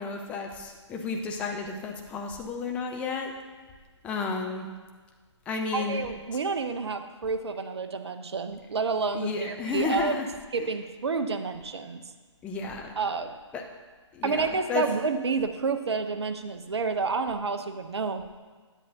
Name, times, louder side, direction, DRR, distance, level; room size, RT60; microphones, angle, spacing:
voice 1, 0.0-3.3 4.0-4.7 5.5-6.0 9.1-10.3 12.4-12.9 13.5-13.6 14.1-14.9, left 4 dB, 10° left, 2 dB, 0.5 m, -32 dB
voice 2, 5.7-10.1 10.5-12.0 13.0-13.4 14.2-18.2, right 4 dB, 60° right, 8 dB, 0.7 m, -29 dB
10.0 x 8.1 x 2.7 m, 1.4 s
figure-of-eight pair, 135°, 16 cm